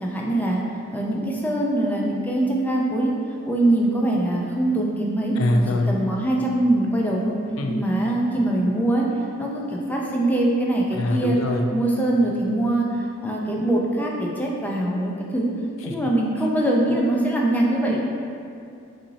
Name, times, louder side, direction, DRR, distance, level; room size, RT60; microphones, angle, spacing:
voice 1, 0.0-0.6 0.9-3.1 3.4-5.4 5.9-7.3 7.7-9.1 9.4-11.4 11.7-15.5 15.8-18.0, right 1 dB, 10° left, -3 dB, 0.5 m, -23 dB
voice 2, 5.4-6.0 7.6-7.8 10.9-11.7 15.9-16.0, left 1 dB, 75° left, 3 dB, 0.4 m, -23 dB
5.7 x 2.8 x 2.7 m, 2.6 s
head